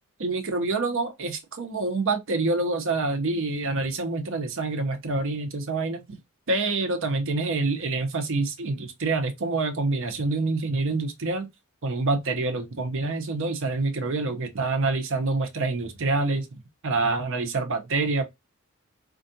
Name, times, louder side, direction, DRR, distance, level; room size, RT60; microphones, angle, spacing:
voice 1, 0.2-6.0 6.5-11.5 11.8-16.5 16.8-18.2, right 3 dB, 60° right, 0.7 m, -26 dB
4.5 x 2.4 x 2.6 m
head